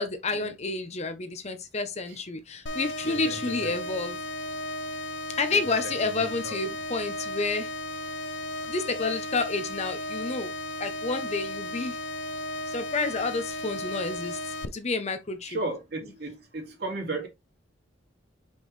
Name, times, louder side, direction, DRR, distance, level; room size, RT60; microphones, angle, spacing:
voice 1, 0.0-4.2 5.4-7.7 8.7-10.5 10.8-12.0 12.7-14.4 14.7-15.6, left 3 dB, 35° left, 0.8 m, -30 dB
sound 1, 2.7-14.7, left 1 dB, 80° left, 0.7 m, -35 dB
voice 2, 3.0-4.0 5.5-6.8 15.4-17.3, right 2 dB, 60° right, 2.6 m, -36 dB
6.0 x 5.3 x 3.2 m
head